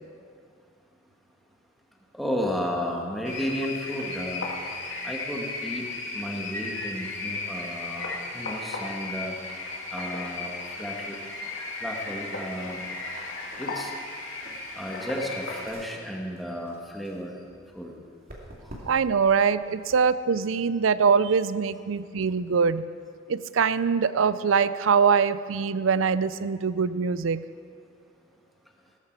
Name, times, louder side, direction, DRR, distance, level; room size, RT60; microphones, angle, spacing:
voice 1, 2.1-4.5 5.0-5.9 6.1-9.3 9.9-11.2 11.7-12.9 13.6-13.9 14.8-17.4 17.7-17.9, equal, ahead, -1 dB, 1.8 m, -33 dB
sound 1, 3.2-15.7, left 3 dB, 65° left, 2.3 m, -35 dB
sound 2, 13.0-19.2, right 1 dB, 50° right, 2.6 m, -49 dB
voice 2, 18.9-22.9 23.3-27.4, right 6 dB, 70° right, 15 dB, 0.5 m, -23 dB
17.0 x 14.0 x 4.7 m, 2.2 s
head